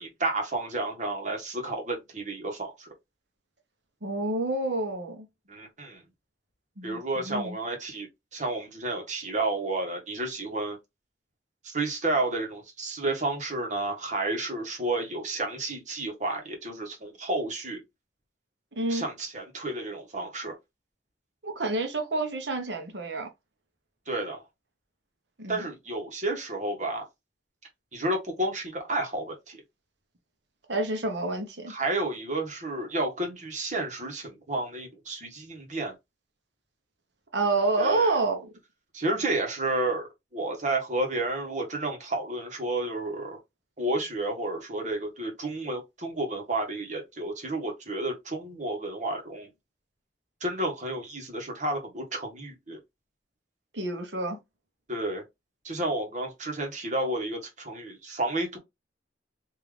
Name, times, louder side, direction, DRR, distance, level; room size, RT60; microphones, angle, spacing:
voice 1, 0.0-2.9 5.5-6.0 6.8-10.8 11.6-17.8 18.9-20.5 24.1-24.4 25.5-27.1 27.9-29.6 31.7-35.9 37.8-38.2 38.9-43.4 43.8-49.5 50.4-52.8 54.9-55.2 55.6-58.6, right 2 dB, 45° right, 1.4 m, -31 dB
voice 2, 4.0-5.3 6.8-7.0 7.2-7.6 18.7-19.1 21.4-23.3 25.4-25.6 30.7-31.7 37.3-38.5 53.7-54.4, right 2 dB, 80° right, 1.2 m, -28 dB
3.7 x 2.9 x 3.3 m
head